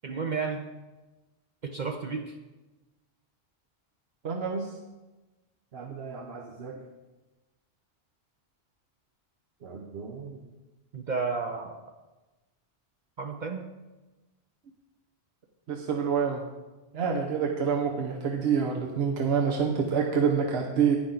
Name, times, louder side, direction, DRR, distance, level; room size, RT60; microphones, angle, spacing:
voice 1, 0.0-0.6 1.6-2.3 10.9-11.8 13.2-13.7, right 5 dB, 50° right, 3 dB, 0.8 m, -32 dB
voice 2, 4.2-4.7 5.7-6.8 9.6-10.4 15.7-16.4 16.9-21.0, right 6 dB, 75° right, 1 dB, 1.1 m, -28 dB
10.0 x 10.0 x 3.9 m, 1.1 s
omnidirectional pair, 1.1 m